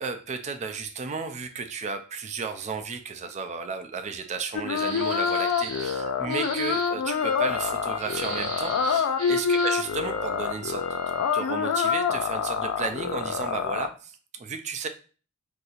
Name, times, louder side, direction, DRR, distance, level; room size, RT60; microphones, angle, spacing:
voice 1, 0.0-14.9, right 5 dB, 30° right, 8 dB, 0.3 m, -34 dB
sound 1, 4.5-13.9, left 6 dB, 65° left, 0.4 m, -26 dB
sound 2, 4.7-6.0 6.3-6.9 8.0-9.9, right 3 dB, 85° right, 1.1 m, -37 dB
Trumpet, 7.1-11.5, left 3 dB, 5° left, 0.9 m, -41 dB
4.1 x 2.7 x 2.4 m, 0.38 s
head